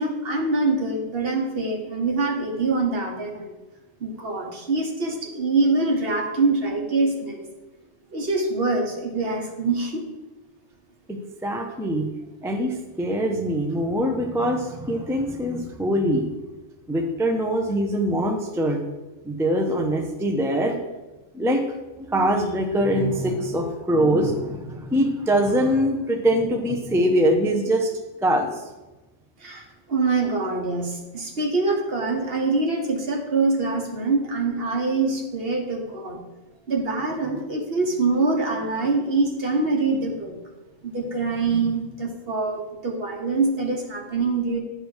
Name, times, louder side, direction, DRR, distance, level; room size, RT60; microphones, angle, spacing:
voice 1, 0.0-3.5 4.0-7.4 8.1-10.0 29.4-36.2 36.7-40.4 40.8-44.6, right 3 dB, 50° right, 2 dB, 1.3 m, -24 dB
voice 2, 11.1-12.1 12.4-16.3 16.9-18.8 19.2-20.8 21.3-21.6 22.0-27.9 28.2-28.5, equal, 5° right, 3 dB, 0.5 m, -23 dB
9.8 x 3.4 x 6.3 m, 1.1 s
omnidirectional pair, 1.3 m